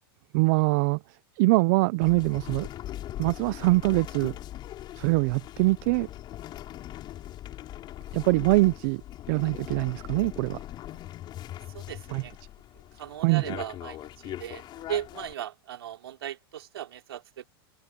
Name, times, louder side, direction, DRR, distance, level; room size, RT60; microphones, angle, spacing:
voice 1, 0.3-1.0 1.4-2.7 3.2-4.4 5.0-6.1 8.1-9.0 9.3-10.6 12.1-12.2 13.2-13.4, right 24 dB, 55° right, 0.8 m, -23 dB
sound 1, 2.0-15.3, left 13 dB, 35° left, 7.1 m, -40 dB
voice 2, 11.7-12.3 13.0-17.4, right 11 dB, 85° right, 3.7 m, -37 dB
open air
hypercardioid pair, 120°, 13 cm